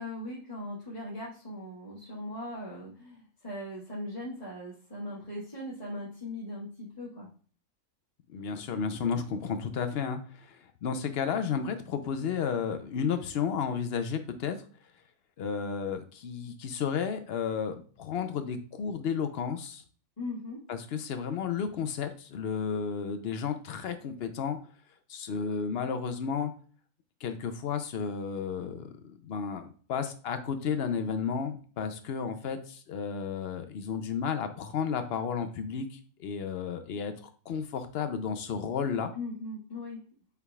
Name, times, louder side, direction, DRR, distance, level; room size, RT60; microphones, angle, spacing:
voice 1, 0.0-7.3 20.2-20.6 39.1-40.0, left 1 dB, 25° left, -9 dB, 1.5 m, -39 dB
voice 2, 8.3-14.6 15.4-19.8 20.7-24.6 25.1-26.5 27.2-37.1 37.5-39.1, left 6 dB, 60° left, 9 dB, 0.7 m, -32 dB
6.8 x 3.4 x 2.3 m, 0.43 s
omnidirectional pair, 1.5 m